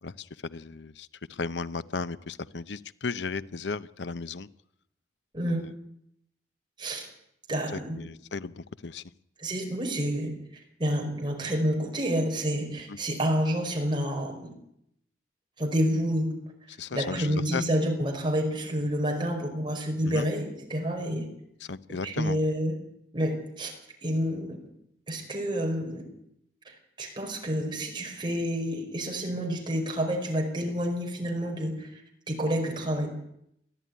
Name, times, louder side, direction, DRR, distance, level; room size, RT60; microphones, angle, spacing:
voice 1, 0.0-4.5 5.6-5.7 7.7-9.0 12.9-13.0 16.8-17.6 20.0-20.3 21.7-22.4, left 4 dB, 85° left, 15 dB, 0.8 m, -35 dB
voice 2, 7.5-8.0 9.4-10.3 10.8-14.5 15.6-16.3 16.9-21.3 22.0-22.7 23.1-23.7 24.0-24.6 25.1-26.1 26.6-32.0 32.3-33.1, equal, 30° right, 1 dB, 5.1 m, -29 dB
22.5 x 14.5 x 9.5 m, 0.76 s
head